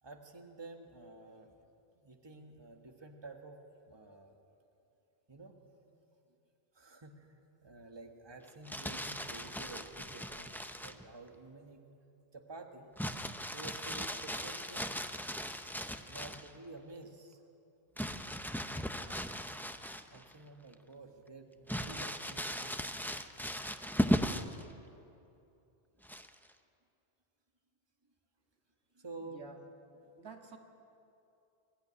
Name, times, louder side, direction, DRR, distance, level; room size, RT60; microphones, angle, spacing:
voice 1, 0.0-1.5 1.9-3.6 3.9-4.3 5.3-6.0 6.7-11.8 12.3-12.9 13.4-14.9 16.1-17.4 20.1-22.9 28.9-29.5 29.9-30.0, right 3 dB, 25° right, 3 dB, 1.6 m, -51 dB
Crumpling crinkling, 8.5-11.0 13.0-16.5 18.0-20.3 20.7-20.8 21.7-24.6 26.0-26.5, equal, ahead, 0.6 m, -37 dB
voice 2, 29.2-29.6 30.2-30.6, right 4 dB, 80° right, 3 dB, 1.9 m, -50 dB
23.0 x 14.0 x 9.8 m, 2.7 s
omnidirectional pair, 1.1 m